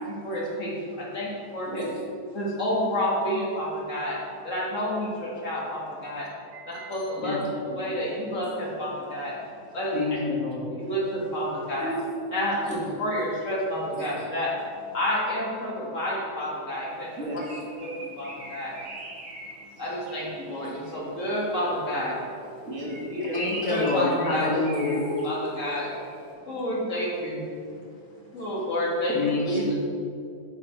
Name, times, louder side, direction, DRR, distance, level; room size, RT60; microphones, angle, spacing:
voice 1, 0.1-1.8 2.3-4.2 4.4-6.3 6.7-7.4 7.7-9.4 9.7-10.2 10.8-11.9 12.3-14.5 14.9-17.1 17.8-18.7 19.8-22.2 23.7-24.6 25.2-25.9 26.4-27.4 28.3-29.2 29.5-29.7, equal, 50° left, -5 dB, 2.1 m, -29 dB
voice 2, 1.6-2.6 6.5-6.9 8.4-8.5 11.8-12.4 12.6-12.8 14.0-14.1 17.2-18.1 20.6-20.7 22.7-23.5 24.3-24.5 24.7-25.4 28.4-28.5, equal, 50° right, -7 dB, 2.6 m, -35 dB
voice 3, 9.9-10.7 23.3-25.0 29.2-29.7, left 2 dB, 70° left, -4 dB, 2.2 m, -27 dB
Bird, 17.0-21.1 22.7-26.2, right 2 dB, 75° right, 1.8 m, -43 dB
7.1 x 7.1 x 4.4 m, 2.5 s
omnidirectional pair, 1.7 m